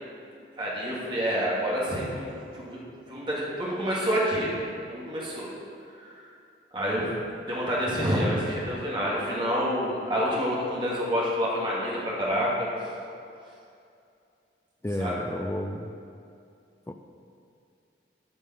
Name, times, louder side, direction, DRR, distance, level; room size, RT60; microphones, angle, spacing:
voice 1, 0.6-2.8 3.1-4.5 4.9-5.5 6.0-6.3 6.7-7.1 7.5-12.7 15.0-15.1, equal, 25° right, -6 dB, 2.2 m, -28 dB
voice 2, 14.8-15.9 16.9-17.0, left 1 dB, 15° left, 7 dB, 0.4 m, -31 dB
11.5 x 5.4 x 5.7 m, 2.5 s
head